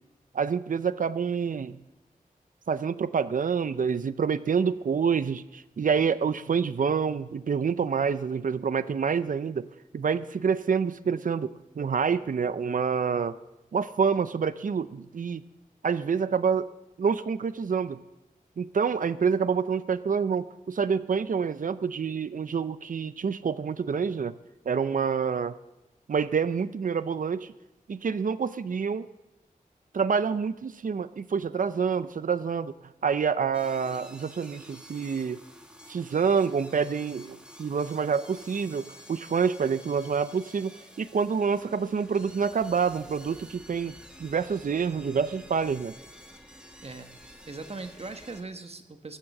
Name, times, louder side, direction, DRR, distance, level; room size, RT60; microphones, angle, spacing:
voice 1, 0.3-1.8 2.7-9.7 9.9-13.4 13.7-15.4 15.8-16.7 17.0-18.0 18.6-24.4 24.7-25.6 26.1-27.5 27.9-29.1 29.9-32.7 33.0-35.4 35.9-43.9 44.2-46.0, right 6 dB, 65° right, 14 dB, 0.6 m, -27 dB
sound 1, 33.5-48.4, equal, 5° right, 1.9 m, -50 dB
voice 2, 46.8-49.2, right 3 dB, 45° right, 7 dB, 1.3 m, -40 dB
20.5 x 7.6 x 7.3 m, 0.97 s
wide cardioid pair, 80°, 15 cm